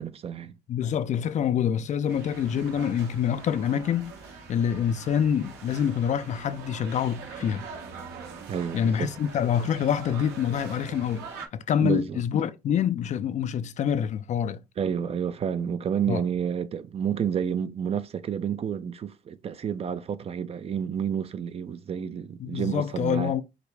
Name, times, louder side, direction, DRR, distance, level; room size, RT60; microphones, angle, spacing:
voice 1, 0.0-0.6 8.5-9.1 11.8-12.2 14.8-23.3, right 8 dB, 35° right, 0.5 m, -30 dB
voice 2, 0.7-4.1 4.5-7.7 8.7-11.3 11.5-14.6 16.1-16.2 22.4-23.4, left 8 dB, 45° left, 0.4 m, -26 dB
sound 1, 2.1-11.5, right 5 dB, 80° right, 1.3 m, -43 dB
5.0 x 2.1 x 4.6 m
cardioid pair, 110°, 17 cm